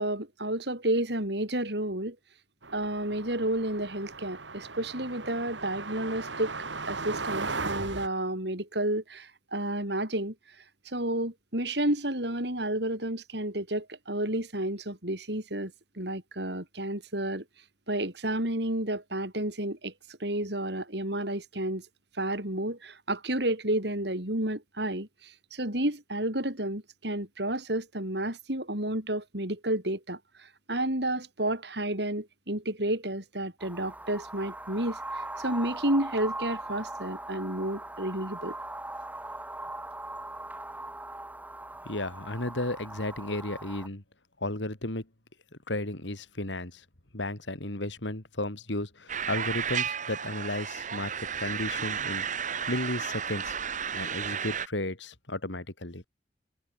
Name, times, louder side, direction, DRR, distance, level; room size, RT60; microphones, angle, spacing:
voice 1, 0.0-2.2 2.7-6.5 6.9-10.3 10.8-15.7 16.0-17.4 17.9-21.9 22.2-38.6, right 1 dB, 65° right, 6.9 m, -31 dB
sound 1, 2.6-8.1, right 3 dB, 85° right, 3.3 m, -37 dB
sound 2, 33.6-43.9, right 2 dB, 10° right, 5.0 m, -40 dB
voice 2, 41.9-44.0 44.4-45.1 45.7-46.8 47.1-52.2 52.7-53.6 53.9-56.0, left 1 dB, 80° left, 3.6 m, -34 dB
sound 3, 49.1-54.7, right 7 dB, 45° right, 2.2 m, -33 dB
head